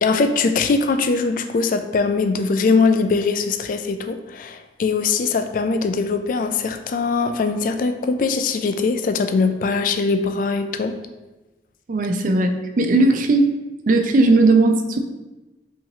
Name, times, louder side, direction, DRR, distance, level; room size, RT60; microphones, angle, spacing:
voice 1, 0.0-10.9, left 4 dB, 50° left, 8 dB, 0.3 m, -21 dB
voice 2, 11.9-13.5 13.9-15.0, right 2 dB, 45° right, 6 dB, 0.4 m, -17 dB
5.5 x 3.0 x 2.7 m, 1.1 s
head